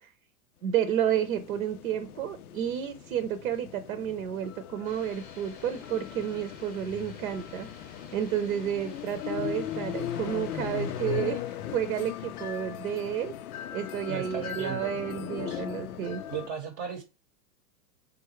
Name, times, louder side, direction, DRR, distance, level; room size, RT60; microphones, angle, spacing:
voice 1, 0.6-7.7 8.1-11.4 11.7-13.3 13.7-16.2, right 9 dB, 65° right, 9 dB, 0.8 m, -31 dB
sound 1, 0.8-16.5, left 10 dB, 70° left, 0.5 m, -38 dB
sound 2, 4.8-11.0, left 5 dB, 20° left, 0.7 m, -50 dB
voice 2, 14.1-14.9 15.5-15.6 16.3-17.0, right 8 dB, 30° right, 4 dB, 0.8 m, -36 dB
3.9 x 3.6 x 3.0 m, 0.29 s
hypercardioid pair, 105°, 46 cm